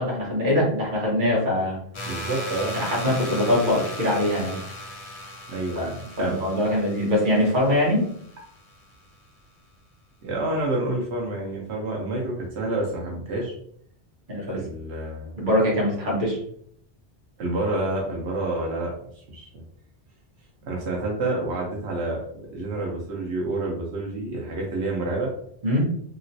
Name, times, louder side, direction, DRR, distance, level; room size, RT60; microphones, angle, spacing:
voice 1, 0.0-1.8 2.7-4.6 5.8-5.9 6.2-8.0 14.3-14.6 15.4-16.4 25.6-25.8, left 1 dB, 50° right, -4 dB, 1.2 m, -23 dB
sound 1, 1.9-8.8, equal, 35° left, 0.6 m, -37 dB
voice 2, 2.1-2.7 5.5-5.9 6.2-6.3 10.2-13.5 14.5-15.3 17.4-18.9 19.3-19.5 20.6-25.3, right 2 dB, 85° right, -2 dB, 1.0 m, -28 dB
3.0 x 2.9 x 2.7 m, 0.65 s
omnidirectional pair, 1.1 m